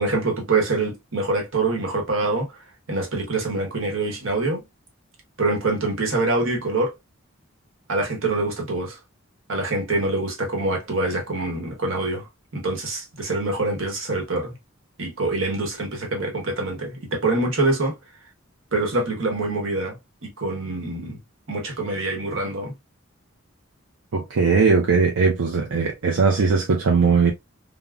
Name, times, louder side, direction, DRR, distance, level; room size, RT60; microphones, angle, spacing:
voice 1, 0.0-2.6 2.9-4.6 5.4-6.9 7.9-9.0 9.5-12.3 12.5-14.5 15.0-18.0 18.7-21.2 21.5-22.7, right 2 dB, 70° right, 1.0 m, -25 dB
voice 2, 24.1-27.3, right 5 dB, 85° right, 0.5 m, -19 dB
3.5 x 2.1 x 2.3 m
head